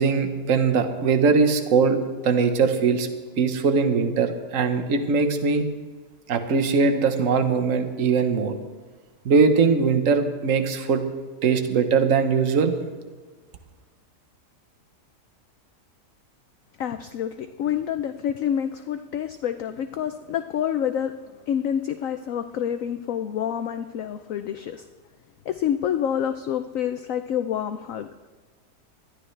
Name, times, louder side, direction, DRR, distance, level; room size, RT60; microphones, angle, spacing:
voice 1, 0.0-3.1 3.4-5.7 6.3-8.5 9.2-11.0 11.4-12.7, right 5 dB, 55° right, 7 dB, 1.4 m, -21 dB
voice 2, 16.8-21.2 21.5-24.8 25.5-28.1, left 9 dB, 65° left, 9 dB, 0.8 m, -27 dB
20.5 x 13.0 x 3.3 m, 1.4 s
omnidirectional pair, 1.8 m